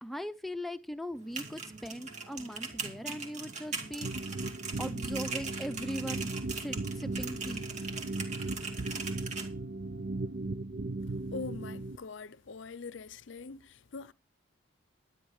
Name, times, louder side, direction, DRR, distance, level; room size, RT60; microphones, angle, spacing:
voice 1, 0.0-4.4 4.8-7.7, equal, ahead, 0.7 m, -40 dB
Fast typing on a keyboard, 1.2-9.5, right 4 dB, 35° right, 2.3 m, -40 dB
Brass instrument, 1.9-10.4, right 3 dB, 80° right, 6.3 m, -60 dB
sound 1, 4.0-12.0, right 2 dB, 50° right, 0.6 m, -37 dB
voice 2, 11.0-14.1, left 4 dB, 65° left, 0.6 m, -43 dB
12.0 x 9.9 x 4.8 m
head